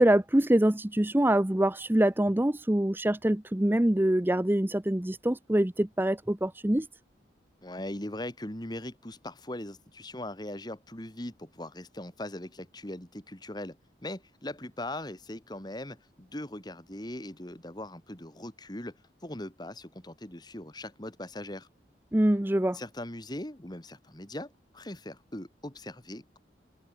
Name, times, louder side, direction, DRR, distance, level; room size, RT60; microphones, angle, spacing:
voice 1, 0.0-6.9 22.1-22.8, right 1 dB, 10° right, 0.6 m, -25 dB
voice 2, 7.6-13.8 14.0-18.9 19.2-21.7 22.7-26.4, left 1 dB, 25° left, 2.0 m, -40 dB
head